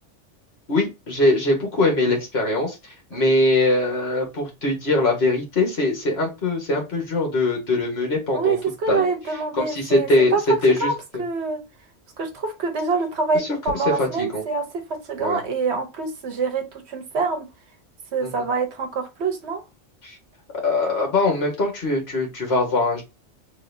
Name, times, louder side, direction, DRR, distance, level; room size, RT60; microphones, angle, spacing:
voice 1, 0.7-8.6 8.9-9.0 9.6-10.4 10.6-11.2 13.3-13.5 13.7-14.4 15.2-15.4 18.2-18.3 20.0-20.2 20.6-23.0, left 2 dB, 60° left, 1.7 m, -22 dB
voice 2, 8.3-11.6 12.2-17.5 18.1-19.6, right 4 dB, 65° right, 1.1 m, -26 dB
4.0 x 3.1 x 2.6 m
omnidirectional pair, 1.2 m